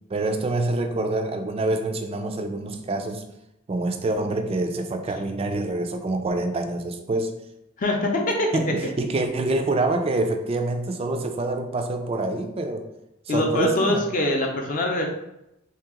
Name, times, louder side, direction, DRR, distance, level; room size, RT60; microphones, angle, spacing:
voice 1, 0.1-3.3 3.7-7.4 8.5-12.9 13.3-14.0, right 2 dB, 25° right, 6 dB, 0.3 m, -26 dB
voice 2, 7.8-8.7 13.3-15.1, left 1 dB, 40° left, 1 dB, 0.5 m, -23 dB
3.1 x 2.8 x 3.6 m, 0.86 s
head